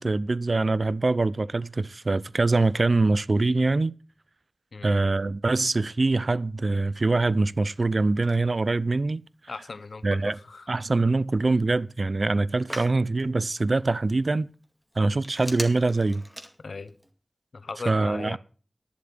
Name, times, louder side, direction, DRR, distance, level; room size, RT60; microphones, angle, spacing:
voice 1, 0.0-3.9 4.8-9.2 10.0-10.4 10.7-14.5 15.0-16.2 17.9-18.4, right 3 dB, 60° right, 0.5 m, -24 dB
Telephone, 7.5-17.1, equal, 5° right, 2.1 m, -45 dB
voice 2, 9.5-10.7 12.7-12.8 16.6-17.0 17.5-18.4, left 4 dB, 85° left, 0.8 m, -38 dB
11.5 x 7.4 x 6.1 m
wide cardioid pair, 50°, 0 cm